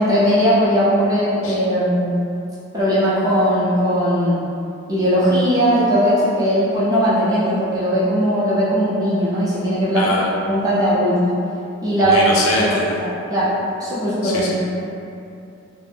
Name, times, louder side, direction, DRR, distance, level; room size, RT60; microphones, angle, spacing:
voice 1, 0.0-2.1 2.7-4.4 4.9-10.1 10.4-11.3 11.8-12.2 12.5-13.0 13.3-13.5 13.8-14.5, equal, 15° right, -10 dB, 0.5 m, -18 dB
voice 2, 9.9-10.3 12.0-12.8 14.2-14.5, left 2 dB, 75° left, -4 dB, 0.5 m, -22 dB
2.5 x 2.0 x 3.2 m, 2.6 s
head